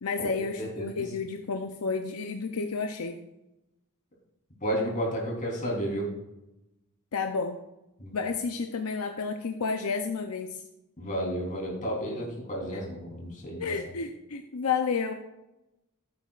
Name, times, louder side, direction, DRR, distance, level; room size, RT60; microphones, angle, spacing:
voice 1, 0.0-3.2 7.1-7.6 8.1-10.6 12.7-12.8 13.6-15.1, left 5 dB, 75° left, 5 dB, 0.6 m, -31 dB
voice 2, 4.6-6.1 8.0-8.2 11.0-13.7, equal, 35° left, -2 dB, 3.6 m, -32 dB
14.5 x 8.4 x 2.5 m, 0.94 s
head